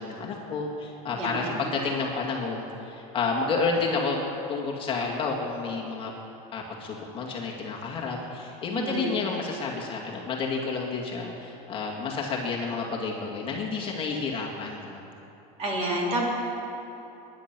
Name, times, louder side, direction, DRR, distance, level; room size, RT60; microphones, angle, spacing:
voice 1, 0.0-4.2 4.5-6.1 6.5-15.0, left 4 dB, 30° left, -2 dB, 2.1 m, -30 dB
voice 2, 1.1-1.7 8.7-9.1 15.6-16.3, right 1 dB, 35° right, -3 dB, 3.7 m, -29 dB
21.5 x 10.5 x 6.1 m, 3.0 s
supercardioid pair, 145°, 19 cm